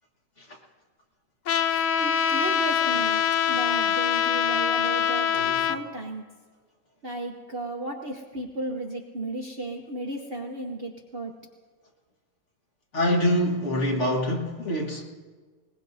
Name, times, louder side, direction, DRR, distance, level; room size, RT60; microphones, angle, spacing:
Trumpet, 1.5-5.8, left 8 dB, 65° left, 0.8 m, -24 dB
voice 1, 1.7-5.3 5.7-6.2 7.0-11.3, right 2 dB, 45° right, 1 dB, 0.9 m, -34 dB
voice 2, 5.3-5.7 12.9-15.0, equal, 45° left, 0 dB, 1.9 m, -25 dB
21.5 x 20.0 x 2.7 m, 1.5 s
omnidirectional pair, 1.8 m